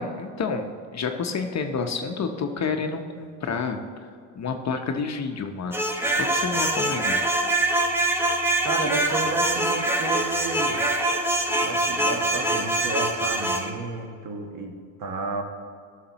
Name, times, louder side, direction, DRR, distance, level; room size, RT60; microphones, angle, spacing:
voice 1, 0.0-4.1 4.4-5.8 6.1-7.2, left 5 dB, 40° left, 5 dB, 0.8 m, -29 dB
sound 1, 5.7-13.7, right 1 dB, 5° right, 0.8 m, -24 dB
voice 2, 8.6-10.9 11.6-15.4, right 3 dB, 45° right, 4 dB, 1.3 m, -32 dB
11.0 x 6.6 x 3.0 m, 2.2 s
supercardioid pair, 85°, 43 cm